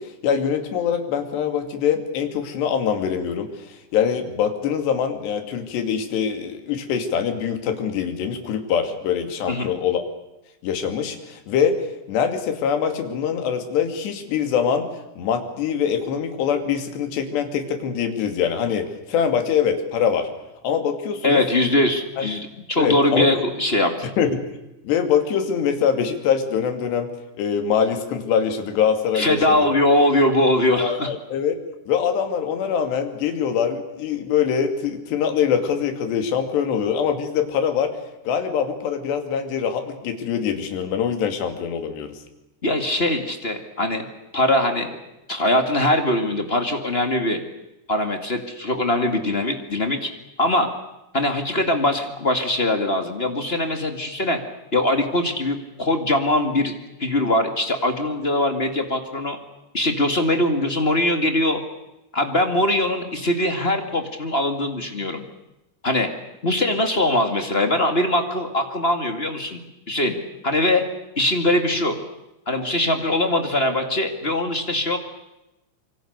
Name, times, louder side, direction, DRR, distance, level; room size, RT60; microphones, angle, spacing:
voice 1, 0.0-10.0 10.6-14.9 15.2-20.3 20.6-21.4 22.2-22.3 22.8-23.3 24.2-24.5 24.8-29.7 30.8-31.6 31.9-38.0 38.3-42.2, left 7 dB, 70° left, 6 dB, 4.7 m, -23 dB
voice 2, 21.2-24.1 29.1-31.1 42.6-44.1 44.3-45.0 45.3-47.4 47.9-50.1 50.4-50.7 51.1-54.4 54.7-56.7 57.0-59.4 59.7-61.6 62.1-65.2 65.8-66.1 66.4-69.6 69.9-70.1 70.4-70.8 71.1-71.9 72.4-75.0, left 1 dB, 40° left, 5 dB, 0.8 m, -21 dB
27.0 x 24.5 x 6.7 m, 0.93 s
omnidirectional pair, 5.1 m